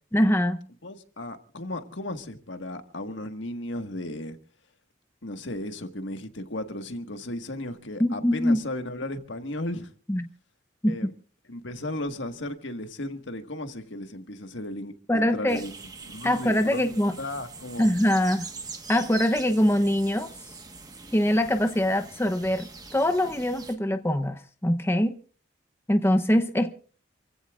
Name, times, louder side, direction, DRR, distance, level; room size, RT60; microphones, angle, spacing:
voice 1, 0.1-0.6 8.0-8.6 10.1-10.3 10.8-11.0 15.1-15.6 16.2-17.1 17.8-18.5 18.9-20.3 21.1-25.2 25.9-26.7, left 1 dB, 10° left, 0.8 m, -23 dB
voice 2, 0.8-4.4 5.2-9.9 10.9-11.1 11.5-15.7 16.1-16.9 17.2-17.9, left 1 dB, 75° left, 1.7 m, -35 dB
sound 1, 15.5-23.8, right 4 dB, 20° right, 1.4 m, -43 dB
28.5 x 16.0 x 2.5 m
head